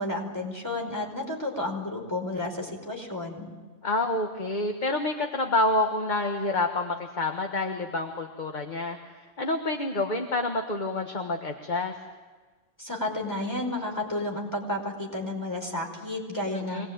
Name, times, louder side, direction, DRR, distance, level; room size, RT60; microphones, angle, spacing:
voice 1, 0.0-3.5 12.8-16.9, left 1 dB, 15° left, 0 dB, 5.0 m, -32 dB
voice 2, 3.8-9.0 9.4-11.9 16.5-16.9, left 2 dB, 40° left, 4 dB, 1.6 m, -28 dB
25.0 x 19.5 x 8.9 m, 1.4 s
omnidirectional pair, 1.3 m